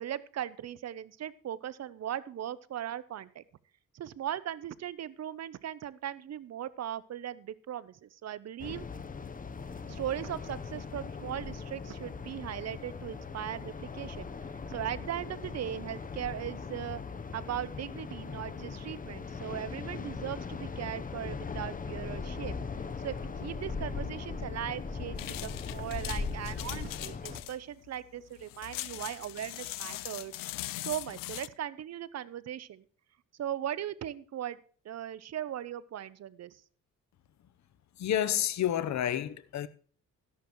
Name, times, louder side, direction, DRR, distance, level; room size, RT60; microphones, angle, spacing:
voice 1, 0.0-3.4 3.9-8.9 9.9-14.3 14.7-17.0 17.3-22.6 23.0-30.4 30.8-32.8 33.4-34.6 34.8-36.6, right 11 dB, 55° right, 0.7 m, -38 dB
sound 1, 8.6-27.4, left 5 dB, 25° left, 0.8 m, -39 dB
sound 2, 25.2-31.5, left 17 dB, 85° left, 0.5 m, -41 dB
voice 2, 38.0-39.7, left 10 dB, 60° left, 0.9 m, -29 dB
12.5 x 11.0 x 3.1 m
cardioid pair, 110°, 32 cm